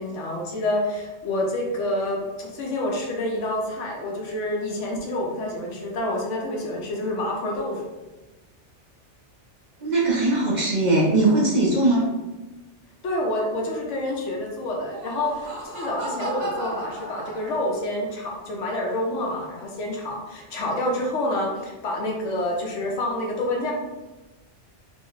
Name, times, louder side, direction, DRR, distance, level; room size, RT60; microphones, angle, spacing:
voice 1, 0.0-7.8 13.0-23.7, left 1 dB, 85° left, -1 dB, 1.1 m, -28 dB
voice 2, 9.8-12.1, right 2 dB, 45° right, -4 dB, 0.7 m, -20 dB
Laughter, 14.7-17.9, right 2 dB, 85° right, 1.0 m, -34 dB
2.9 x 2.1 x 3.9 m, 1.1 s
omnidirectional pair, 1.2 m